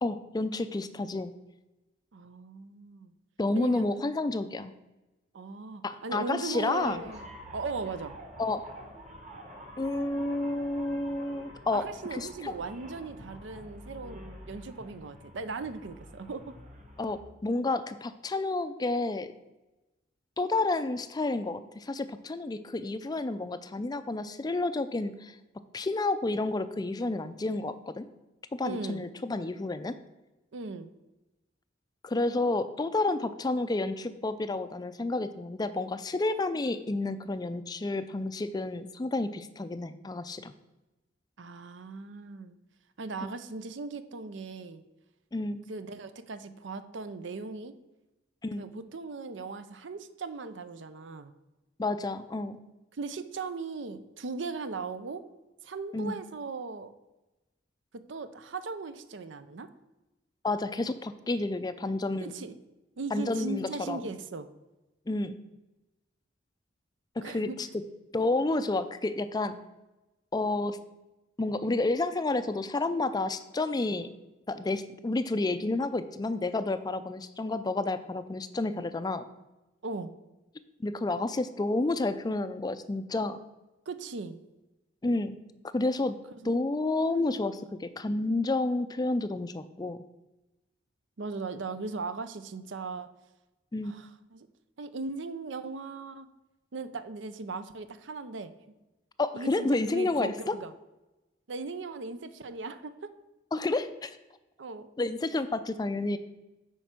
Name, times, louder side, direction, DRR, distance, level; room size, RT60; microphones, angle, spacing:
voice 1, 0.0-1.3 3.4-4.7 5.8-7.0 8.4-8.7 9.8-11.9 12.1-12.5 17.0-19.3 20.4-25.4 25.7-28.1 28.6-30.0 32.0-40.5 43.2-43.3 45.3-45.6 48.4-48.7 51.8-52.6 55.9-56.2 60.4-62.3 63.1-64.0 65.1-65.4 67.2-67.8 68.1-69.6 70.3-70.8 71.4-74.1 74.5-79.2 80.8-83.4 85.0-85.4 85.7-86.2 86.4-90.0 93.7-93.9 99.2-100.6 103.5-104.2 105.0-106.2, left 2 dB, 20° left, 12 dB, 0.4 m, -30 dB
voice 2, 2.1-3.1 3.5-3.8 5.3-8.2 11.7-16.5 28.6-29.1 30.5-30.9 41.4-42.6 43.0-44.8 45.7-47.7 48.6-51.3 53.0-55.2 55.6-56.9 58.1-59.7 62.2-62.5 63.0-64.5 67.2-67.6 79.8-80.1 83.9-84.4 86.4-86.5 91.2-93.1 93.8-94.5 94.8-96.3 96.7-98.5 99.3-100.7 101.5-103.1 104.6-104.9, right 3 dB, 75° right, 11 dB, 0.6 m, -38 dB
sound 1, 6.8-17.2, equal, 40° right, 1.6 m, -47 dB
9.3 x 4.5 x 5.9 m, 1.0 s
head